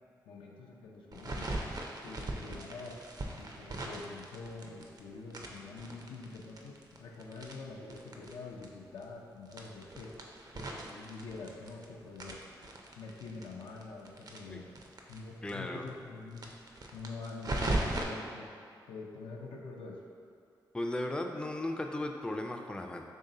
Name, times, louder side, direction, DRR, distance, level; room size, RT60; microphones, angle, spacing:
voice 1, 0.3-1.5 2.0-3.0 3.4-12.4 13.0-14.8 15.1-16.6 16.9-20.0, left 3 dB, 85° left, -1 dB, 0.4 m, -46 dB
sound 1, 1.1-5.0 5.3-8.3 8.6-8.7 9.0-9.1 9.5-11.9 12.2-15.2 15.5-15.6 15.8-15.9 16.3-18.0, right 2 dB, 50° right, 0.5 m, -38 dB
voice 2, 15.4-15.9 20.7-23.1, left 1 dB, 10° left, 3 dB, 0.3 m, -36 dB
3.1 x 2.7 x 3.8 m, 2.4 s
supercardioid pair, 40°, 9 cm